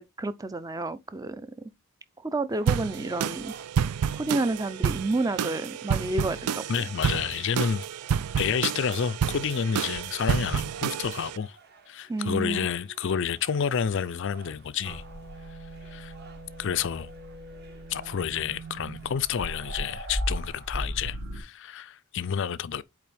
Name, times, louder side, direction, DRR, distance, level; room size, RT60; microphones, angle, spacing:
voice 1, 0.0-1.5 2.2-3.5 4.1-6.6 12.1-12.7, right 2 dB, 15° right, 0.5 m, -30 dB
sound 1, 2.5-20.7, right 5 dB, 45° right, 1.4 m, -54 dB
sound 2, 2.7-11.4, right 7 dB, 90° right, 0.4 m, -29 dB
voice 2, 6.7-7.9 8.4-11.6 11.9-15.0 15.9-16.1 16.6-17.1 17.9-22.8, left 7 dB, 55° left, 0.4 m, -29 dB
sound 3, 14.8-21.4, equal, 65° right, 1.8 m, -37 dB
8.4 x 3.4 x 3.4 m
head